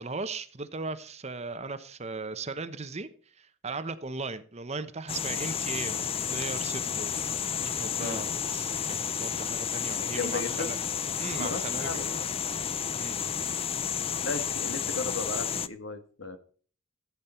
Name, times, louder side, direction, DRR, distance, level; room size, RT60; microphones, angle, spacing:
voice 1, 0.0-3.1 3.4-7.1 7.6-8.7 9.2-10.8 11.2-12.1 12.9-13.2, right 3 dB, 35° right, 11 dB, 0.9 m, -37 dB
sound 1, 5.1-15.7, left 8 dB, 30° left, 0.5 m, -31 dB
voice 2, 10.0-10.7 11.4-12.3 14.2-16.4, left 3 dB, 75° left, 8 dB, 1.7 m, -35 dB
15.0 x 8.7 x 4.4 m, 0.42 s
head